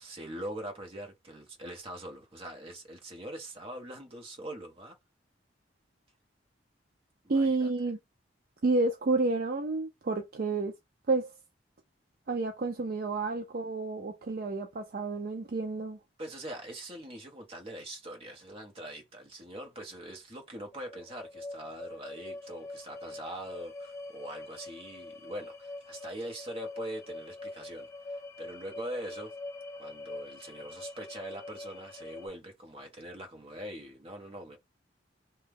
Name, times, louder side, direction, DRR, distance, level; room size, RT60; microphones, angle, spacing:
voice 1, 0.0-5.0 7.2-7.7 16.2-29.3 29.8-34.6, right 1 dB, 30° right, 0.9 m, -43 dB
voice 2, 7.3-8.0 8.6-10.7 11.1-11.3 12.3-16.0, right 3 dB, 50° right, 0.4 m, -30 dB
sound 1, 20.7-32.3, left 2 dB, 15° left, 0.4 m, -44 dB
2.9 x 2.2 x 3.4 m
head